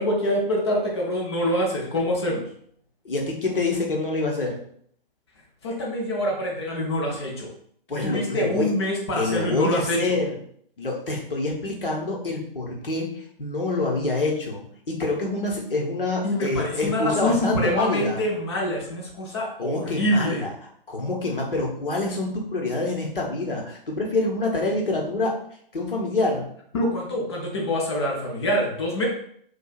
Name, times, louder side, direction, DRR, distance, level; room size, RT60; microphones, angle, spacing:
voice 1, 0.0-2.4 5.6-7.5 8.0-10.0 16.2-20.4 26.7-29.1, left 1 dB, 30° left, -2 dB, 0.6 m, -25 dB
voice 2, 3.0-4.6 7.9-8.7 9.1-10.3 10.8-18.2 19.6-20.5 20.9-25.3 25.7-26.4, left 2 dB, 65° left, 0 dB, 1.0 m, -26 dB
4.4 x 2.3 x 2.4 m, 0.64 s
figure-of-eight pair, 130°, 29 cm